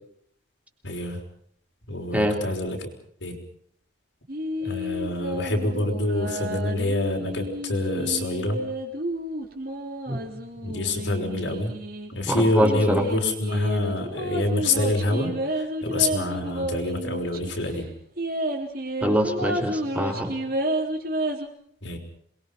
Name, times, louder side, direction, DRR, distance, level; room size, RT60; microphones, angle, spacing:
voice 1, 0.8-1.2 1.9-2.9 3.2-3.4 4.6-8.6 10.6-11.7 12.1-17.9 21.8-22.0, left 2 dB, 75° left, 2 dB, 5.7 m, -26 dB
sound 1, 4.3-12.1 12.6-17.5 17.8-17.9 18.2-21.5, right 1 dB, 50° right, 3.9 m, -31 dB
voice 2, 12.3-13.0 19.0-20.3, equal, 5° right, 3 dB, 3.5 m, -24 dB
27.5 x 22.0 x 5.6 m, 0.65 s
head